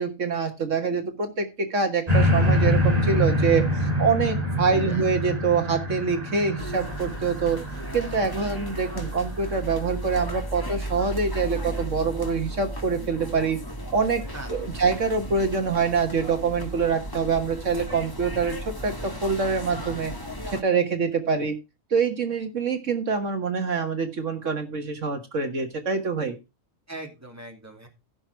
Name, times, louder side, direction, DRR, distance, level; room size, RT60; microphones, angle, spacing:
voice 1, 0.0-7.6 7.9-13.6 13.9-14.2 14.5-20.1 20.5-21.6 21.9-26.4, right 5 dB, 65° right, 6 dB, 1.8 m, -25 dB
sound 1, 2.1-9.4 10.0-10.1, equal, 30° right, 3.0 m, -25 dB
voice 2, 4.7-5.1 14.3-14.8 26.9-27.9, right 2 dB, 10° right, 2 dB, 2.5 m, -40 dB
sound 2, 6.6-20.6, right 1 dB, 15° left, 1.5 m, -35 dB
15.5 x 6.2 x 4.6 m, 0.26 s
omnidirectional pair, 1.4 m